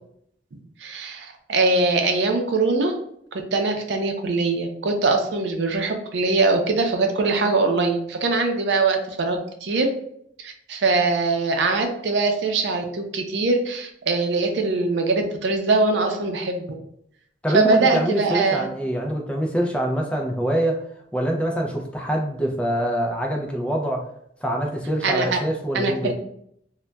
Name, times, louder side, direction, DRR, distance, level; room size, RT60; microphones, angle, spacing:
voice 1, 0.5-2.9 3.3-9.9 10.4-16.6 17.5-18.7 25.0-25.4 25.7-26.1, right 3 dB, 80° right, 4 dB, 0.5 m, -22 dB
voice 2, 17.4-20.8 21.1-24.1 24.4-26.1, right 1 dB, 5° left, 1 dB, 0.3 m, -25 dB
2.2 x 2.2 x 3.8 m, 0.71 s
head